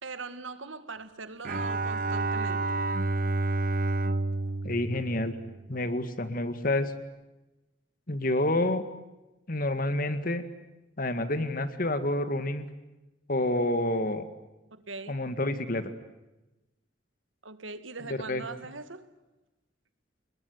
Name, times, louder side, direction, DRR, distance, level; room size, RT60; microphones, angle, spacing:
voice 1, 0.0-2.8 14.7-15.2 17.4-19.1, right 3 dB, 85° right, 1.9 m, -41 dB
Bowed string instrument, 1.4-5.9, right 2 dB, 45° right, 1.1 m, -30 dB
voice 2, 4.6-5.4 5.7-6.9 8.1-8.8 9.5-10.4 11.0-12.7 13.3-14.3 15.1-15.9 18.1-18.4, left 1 dB, 45° left, 2.0 m, -28 dB
29.5 x 21.0 x 9.6 m
head